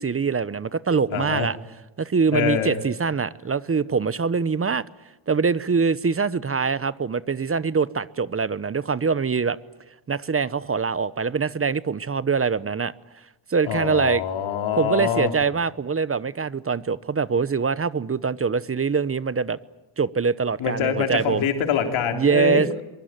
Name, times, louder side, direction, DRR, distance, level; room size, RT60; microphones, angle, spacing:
voice 1, 0.0-1.6 2.0-4.8 5.3-9.6 10.1-12.9 13.5-14.2 14.8-19.6 20.0-21.5 22.1-22.7, right 5 dB, 30° right, 0.9 m, -23 dB
voice 2, 1.1-1.5 2.3-2.8 13.6-15.3 20.6-22.8, left 8 dB, 90° left, 3.5 m, -25 dB
23.5 x 23.0 x 9.1 m
cardioid pair, 90°, 46 cm